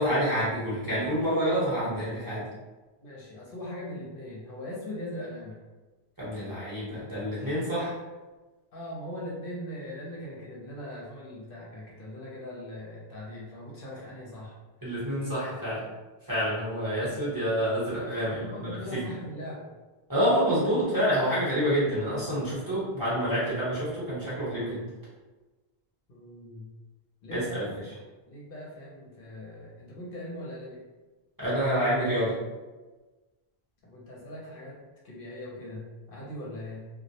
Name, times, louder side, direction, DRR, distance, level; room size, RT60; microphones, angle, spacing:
voice 1, 0.0-2.4 6.2-7.9 14.8-15.8 16.3-19.0 20.1-24.8 27.3-27.6 31.4-32.3, equal, 20° right, -10 dB, 0.8 m, -28 dB
voice 2, 3.0-5.6 8.7-14.6 18.2-19.7 26.1-26.7 27.2-30.8 33.8-34.8 35.0-36.9, left 1 dB, 65° left, -5 dB, 0.8 m, -40 dB
2.2 x 2.0 x 2.7 m, 1.2 s
omnidirectional pair, 1.1 m